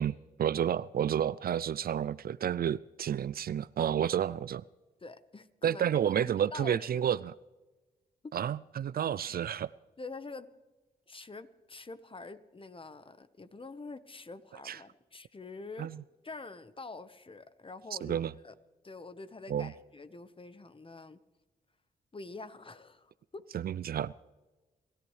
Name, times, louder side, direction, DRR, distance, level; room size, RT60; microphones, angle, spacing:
voice 1, 0.0-4.6 5.6-7.3 8.3-9.7 14.7-14.8 15.8-15.9 18.0-18.3 19.5-19.7 23.5-24.1, right 9 dB, 60° right, 0.4 m, -30 dB
voice 2, 5.0-7.0 8.2-8.4 9.1-9.4 10.0-10.5 11.1-15.9 16.2-18.2 18.4-18.5 18.8-21.2 22.1-23.4, left 3 dB, 30° left, 1.1 m, -46 dB
28.0 x 13.5 x 3.3 m
cardioid pair, 55°, 17 cm